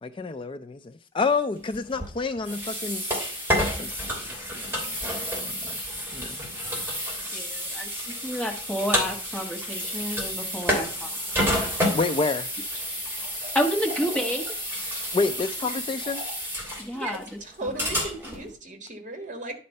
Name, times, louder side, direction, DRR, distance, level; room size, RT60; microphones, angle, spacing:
voice 1, 0.0-3.0 3.5-5.6 6.1-6.4 11.9-12.5 15.1-16.2, left 4 dB, 30° left, 0.4 m, -29 dB
sound 1, 1.7-18.5, equal, 15° right, 2.7 m, -30 dB
voice 2, 7.3-7.9 8.2-11.1 13.5-14.5 16.8-17.2, equal, 5° left, 1.4 m, -29 dB
voice 3, 16.9-19.6, right 2 dB, 45° right, 1.4 m, -36 dB
10.5 x 4.3 x 5.3 m
head